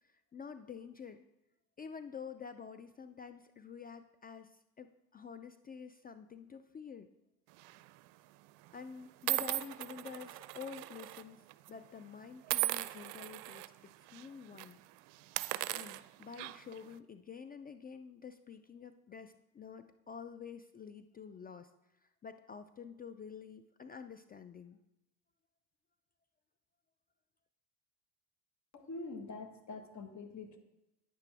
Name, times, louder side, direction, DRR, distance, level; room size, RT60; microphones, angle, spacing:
voice 1, 0.0-1.2 1.8-7.1 8.7-11.4 11.7-14.8 15.7-21.7 22.2-24.8, left 6 dB, 20° left, 10 dB, 0.4 m, -49 dB
sound 1, 7.6-7.9 8.6-8.7 9.3-11.2 11.5-11.7 12.5-13.7 14.1-14.3 14.5-14.7 15.2-16.8, right 19 dB, 65° right, 0.5 m, -37 dB
voice 2, 28.7-30.6, left 3 dB, 35° left, 6 dB, 1.5 m, -45 dB
9.8 x 8.1 x 3.4 m, 0.93 s
hypercardioid pair, 75°, 46 cm